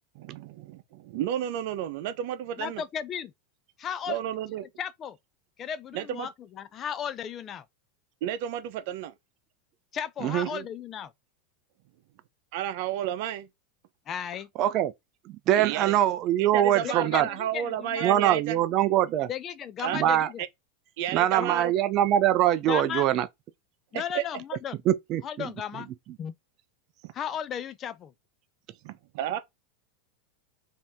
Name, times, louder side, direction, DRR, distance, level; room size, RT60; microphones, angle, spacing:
voice 1, 0.1-2.8 4.1-4.7 5.9-6.3 8.2-9.1 10.4-10.7 12.5-13.5 15.6-16.0 16.4-18.6 19.8-20.0 20.4-20.5 21.0-21.7 23.9-24.2 27.0-27.1 28.8-29.4, right 10 dB, 60° right, 0.8 m, -32 dB
voice 2, 2.6-3.3 3.8-4.2 4.8-5.2 5.6-7.7 9.9-11.1 14.1-14.5 16.8-18.0 19.3-20.4 21.4-21.6 22.7-23.1 23.9-24.8 25.2-25.9 26.2-26.4 27.1-28.1, left 8 dB, 30° left, 0.4 m, -35 dB
voice 3, 14.6-14.9 15.5-17.3 18.0-19.3 19.9-20.3 21.1-23.3 24.9-25.5, right 12 dB, 40° right, 0.4 m, -23 dB
5.1 x 2.8 x 3.5 m
supercardioid pair, 145°, 0 cm